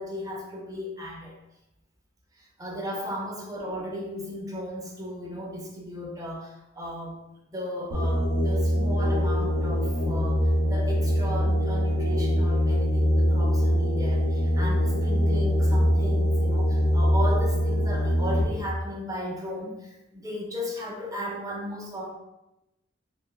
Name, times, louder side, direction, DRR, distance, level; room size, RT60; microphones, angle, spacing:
voice 1, 0.0-1.3 2.3-7.2 7.5-22.1, equal, 20° right, -2 dB, 0.5 m, -35 dB
sound 1, 7.9-18.4, equal, 85° right, 0.6 m, -23 dB
3.3 x 2.7 x 2.3 m, 0.92 s
head